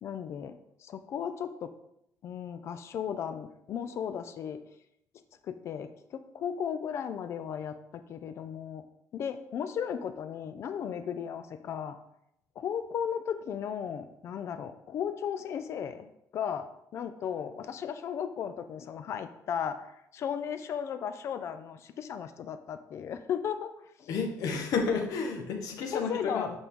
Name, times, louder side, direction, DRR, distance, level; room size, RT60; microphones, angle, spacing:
voice 1, 0.0-1.7 2.2-4.6 5.4-8.8 9.1-12.0 12.6-23.7 24.0-24.1 25.9-26.6, left 8 dB, 45° left, 10 dB, 0.4 m, -35 dB
voice 2, 24.1-26.5, left 5 dB, 60° left, 3 dB, 1.3 m, -31 dB
8.5 x 5.1 x 3.7 m, 0.80 s
cardioid pair, 175°, 7 cm